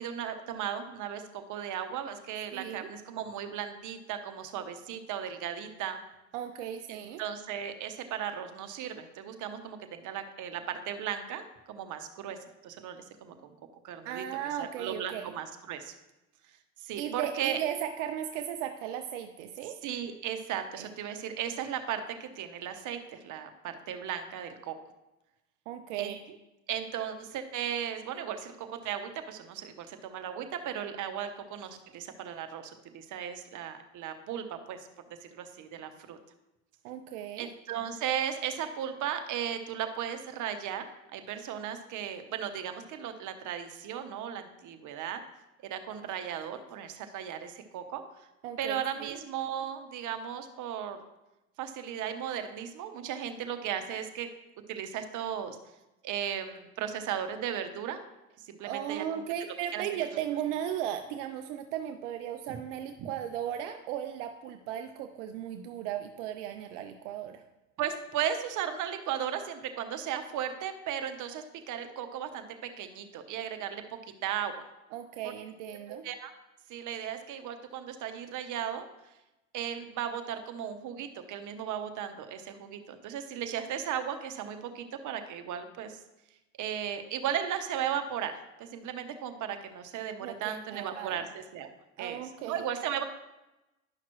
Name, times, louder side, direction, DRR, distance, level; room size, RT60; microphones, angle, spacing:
voice 1, 0.0-6.0 6.9-12.4 12.6-13.5 13.8-14.2 14.6-15.9 16.8-17.6 19.8-24.8 26.0-26.1 26.7-34.9 35.2-36.2 37.4-45.2 45.6-48.3 48.6-51.0 51.6-54.3 54.7-55.6 56.0-58.0 58.5-59.2 59.7-59.8 67.8-74.7 75.2-75.3 75.9-76.3 76.7-78.8 79.5-86.0 86.6-91.7 92.0-93.0, right 9 dB, 55° right, 8 dB, 1.0 m, -36 dB
voice 2, 2.5-2.9 6.3-7.2 14.0-15.3 16.9-19.8 20.8-20.9 25.7-26.4 36.8-37.5 48.4-49.2 58.7-67.4 74.9-76.0 90.2-91.2 92.0-92.6, right 10 dB, 85° right, 7 dB, 0.6 m, -36 dB
10.5 x 5.8 x 3.1 m, 0.98 s
supercardioid pair, 80°, 35 cm